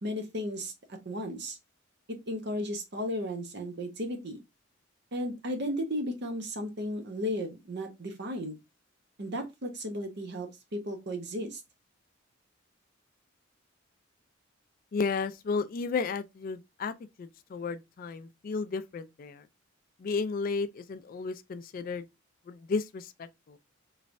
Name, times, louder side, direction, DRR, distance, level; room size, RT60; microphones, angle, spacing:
voice 1, 0.0-0.7 1.0-1.6 2.1-4.4 5.1-8.6 9.2-11.6, equal, 55° right, 0.9 m, -34 dB
voice 2, 14.9-19.5 20.0-22.1 22.5-23.6, left 4 dB, 45° left, 0.3 m, -33 dB
3.1 x 3.1 x 2.5 m
head